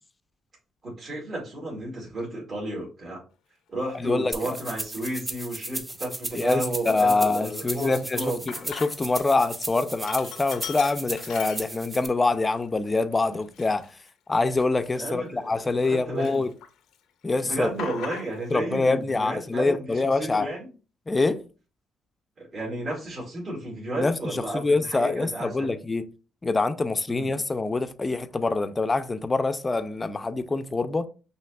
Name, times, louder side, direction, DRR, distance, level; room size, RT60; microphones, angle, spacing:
voice 1, 0.8-3.2 3.7-8.4 14.9-16.5 17.4-20.7 22.4-25.7 27.1-27.3, right 1 dB, 45° right, 2.0 m, -33 dB
voice 2, 3.9-4.6 6.3-13.9 14.3-16.5 17.2-17.7 18.5-20.5 21.1-21.5 24.0-26.1 26.4-31.1, left 3 dB, 25° left, 0.5 m, -25 dB
Sink (filling or washing), 4.0-4.1 4.8-5.3 5.7-5.8 6.1-9.2 9.5-12.1 12.5-12.6 13.3-15.9 16.2-17.0 17.2-18.6, left 9 dB, 85° left, 0.5 m, -41 dB
sound 1, 4.3-12.1, right 1 dB, 15° right, 0.6 m, -36 dB
5.7 x 2.9 x 2.3 m
cardioid pair, 90°, 0 cm